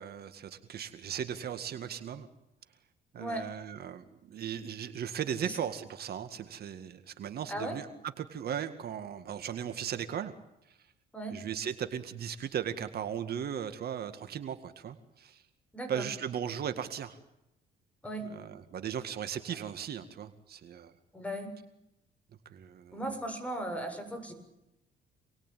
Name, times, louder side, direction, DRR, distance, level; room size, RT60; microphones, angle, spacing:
voice 1, 0.0-2.3 3.1-7.9 8.2-10.3 10.7-10.8 11.3-15.4 15.9-17.2 18.2-20.9 22.5-23.0, right 8 dB, 60° right, 9 dB, 2.0 m, -37 dB
voice 2, 3.2-3.5 5.4-5.6 7.5-7.8 11.1-11.4 15.7-16.1 18.0-18.3 21.1-21.5 22.9-24.3, right 1 dB, 5° left, 5 dB, 7.5 m, -37 dB
28.0 x 21.0 x 9.3 m, 0.87 s
cardioid pair, 110°, 18 cm